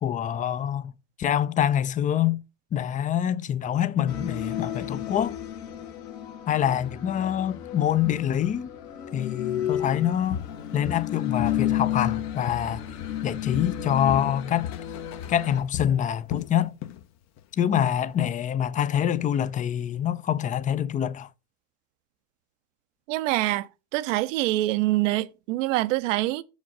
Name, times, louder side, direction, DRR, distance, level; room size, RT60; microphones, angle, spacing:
voice 1, 0.0-0.9 1.2-2.4 2.7-5.4 6.5-8.7 9.1-10.4 10.7-12.8 13.2-14.7 15.3-16.8 17.6-21.3, left 10 dB, 20° left, 0.4 m, -25 dB
sound 1, 4.1-15.6, left 11 dB, 60° left, 1.5 m, -32 dB
Walk footsteps, 9.7-9.9 10.3-11.7 12.0-13.3 13.5-17.1 17.4-17.6 18.1-18.2, left 10 dB, 45° left, 0.8 m, -37 dB
voice 2, 23.1-23.7 23.9-26.4, right 17 dB, 70° right, 0.7 m, -25 dB
6.2 x 5.1 x 5.3 m
hypercardioid pair, 100°, 38 cm